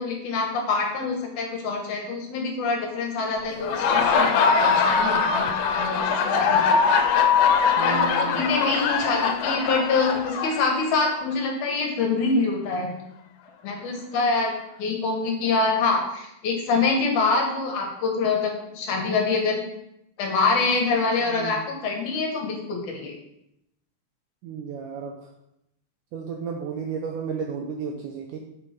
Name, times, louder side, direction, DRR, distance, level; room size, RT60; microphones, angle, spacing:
voice 1, 0.0-6.6 7.6-12.9 13.6-14.5 14.8-19.6 20.2-23.2, left 4 dB, 65° left, 1 dB, 2.3 m, -25 dB
Laughter, 3.5-11.2, left 5 dB, 80° left, 2.5 m, -22 dB
voice 2, 7.8-8.5 21.2-21.6 24.4-25.2 26.1-28.4, right 6 dB, 90° right, 2 dB, 1.8 m, -33 dB
6.5 x 5.3 x 4.2 m, 0.81 s
omnidirectional pair, 4.3 m